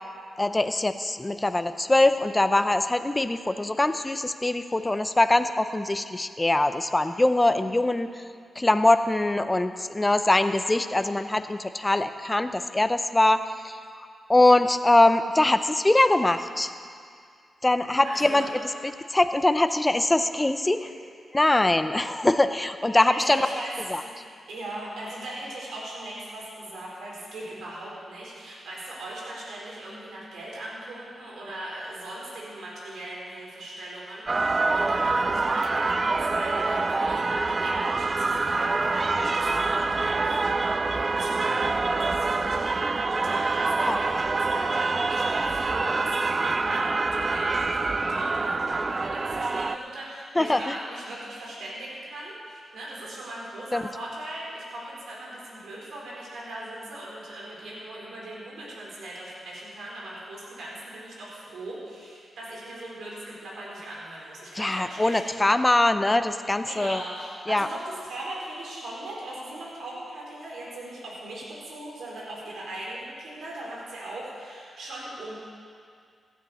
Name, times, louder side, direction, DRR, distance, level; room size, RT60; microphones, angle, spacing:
voice 1, 0.4-8.2 8.6-13.8 14.3-16.7 17.6-18.5 19.1-20.9 21.3-23.4 23.9-24.0 43.9-44.0 50.4-50.8 53.7-53.9 64.5-67.0 67.5-67.7, left 2 dB, 15° left, 10 dB, 0.6 m, -22 dB
voice 2, 18.0-18.5 23.1-24.1 24.5-65.2 66.6-75.4, right 1 dB, 80° right, -5 dB, 4.2 m, -39 dB
sound 1, 34.3-49.8, right 3 dB, 35° right, 0.4 m, -26 dB
16.5 x 12.0 x 4.3 m, 2.3 s
cardioid pair, 85°, 0 cm